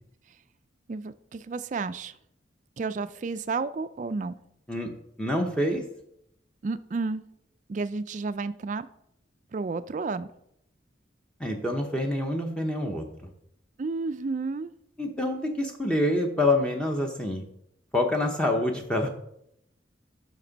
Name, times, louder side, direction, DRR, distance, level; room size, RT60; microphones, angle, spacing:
voice 1, 0.9-2.2 2.8-4.3 6.6-7.2 7.7-8.9 9.5-10.3 13.8-14.7, right 4 dB, 40° right, 13 dB, 0.3 m, -31 dB
voice 2, 5.2-5.8 11.4-13.0 15.0-17.4 17.9-19.1, left 1 dB, 5° left, 2 dB, 0.7 m, -26 dB
9.3 x 5.8 x 4.0 m, 0.76 s
head